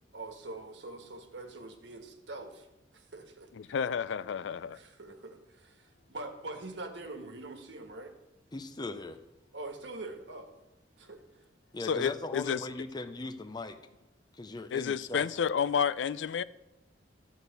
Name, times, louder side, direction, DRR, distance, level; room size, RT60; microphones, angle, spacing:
voice 1, 0.1-2.7 2.9-3.8 4.7-8.1 9.5-10.6 11.0-11.5 11.9-12.3, right 2 dB, 70° right, 1.3 m, -44 dB
voice 2, 3.7-4.8 11.9-12.7 14.7-16.4, left 7 dB, 75° left, 0.4 m, -30 dB
voice 3, 8.5-9.2 11.7-13.8 14.3-15.4, left 2 dB, 25° left, 0.6 m, -39 dB
12.0 x 4.1 x 7.9 m
head